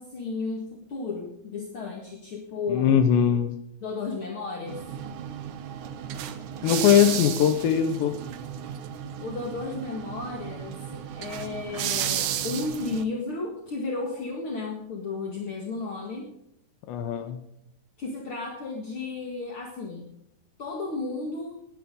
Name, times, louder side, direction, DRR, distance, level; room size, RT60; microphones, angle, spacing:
voice 1, 0.0-3.1 3.8-4.8 9.2-16.3 18.0-20.1 20.6-21.6, left 3 dB, 50° left, 0 dB, 1.7 m, -33 dB
voice 2, 2.7-3.6 6.6-8.1 16.9-17.4, left 8 dB, 80° left, 8 dB, 3.2 m, -21 dB
sound 1, 4.7-13.0, right 10 dB, 80° right, 1.8 m, -33 dB
19.0 x 10.0 x 3.8 m, 0.77 s
omnidirectional pair, 5.1 m